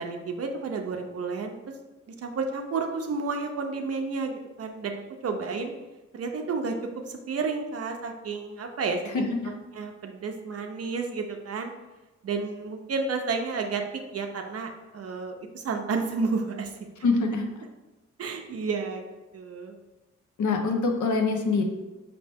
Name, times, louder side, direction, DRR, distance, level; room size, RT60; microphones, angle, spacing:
voice 1, 0.0-1.6 2.2-4.3 4.6-5.7 6.1-6.7 7.1-9.2 9.7-11.7 12.2-13.8 14.1-16.7 17.0-17.1 18.2-19.0 19.3-19.8, right 4 dB, 55° right, 4 dB, 0.5 m, -31 dB
voice 2, 9.1-9.5 17.0-17.5 20.4-21.6, left 3 dB, 85° left, 3 dB, 0.7 m, -24 dB
5.3 x 2.8 x 3.4 m, 1.1 s
wide cardioid pair, 130°, 29 cm